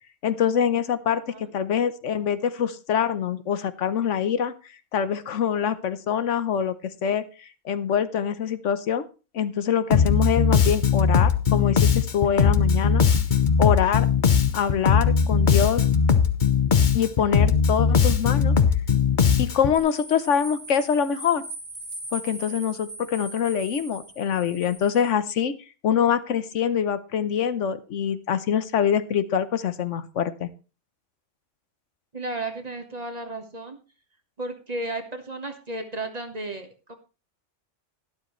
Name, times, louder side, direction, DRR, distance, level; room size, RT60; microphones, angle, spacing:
voice 1, 0.2-4.5 4.9-6.7 7.0-7.2 7.6-9.0 9.3-13.0 13.6-14.1 14.5-15.8 16.9-18.6 19.4-21.4 22.1-25.5 25.8-30.5, left 8 dB, 80° left, 13 dB, 1.2 m, -24 dB
voice 2, 1.1-1.5 32.1-33.8 34.4-37.0, right 2 dB, 35° right, 6 dB, 1.6 m, -34 dB
Bass guitar, 9.9-19.8, left 6 dB, 45° left, 0.9 m, -20 dB
sound 1, 19.7-25.1, right 1 dB, 75° right, 4.7 m, -40 dB
12.0 x 12.0 x 3.1 m, 0.32 s
omnidirectional pair, 1.2 m